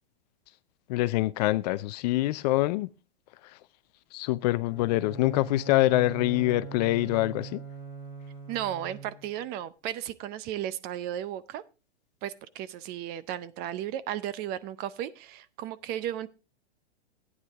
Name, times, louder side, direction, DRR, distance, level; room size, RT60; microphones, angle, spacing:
voice 1, 0.9-2.9 4.1-7.6, left 17 dB, 40° left, 0.5 m, -25 dB
Bowed string instrument, 4.6-9.5, right 6 dB, 15° right, 2.4 m, -42 dB
voice 2, 8.5-11.6 12.2-16.3, right 11 dB, 30° right, 0.6 m, -34 dB
13.5 x 9.6 x 3.5 m
hypercardioid pair, 130°, 33 cm